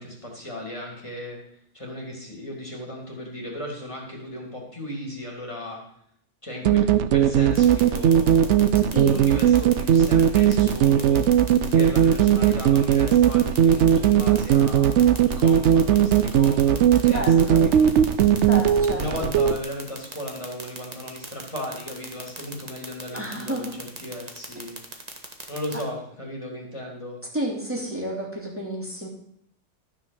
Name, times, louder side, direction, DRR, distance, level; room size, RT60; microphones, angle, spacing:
voice 1, 0.0-1.4 1.7-5.8 6.4-11.2 11.7-18.3 18.9-24.8 25.5-27.2, left 1 dB, 25° left, -2 dB, 3.3 m, -36 dB
sound 1, 6.7-19.6, right 9 dB, 75° right, 0.9 m, -18 dB
sound 2, 7.6-25.8, right 3 dB, 35° right, 1.7 m, -37 dB
voice 2, 17.1-17.6 18.5-19.3 23.1-23.7 27.3-29.1, right 1 dB, 10° right, -3 dB, 2.8 m, -30 dB
13.5 x 5.9 x 7.0 m, 0.71 s
omnidirectional pair, 1.3 m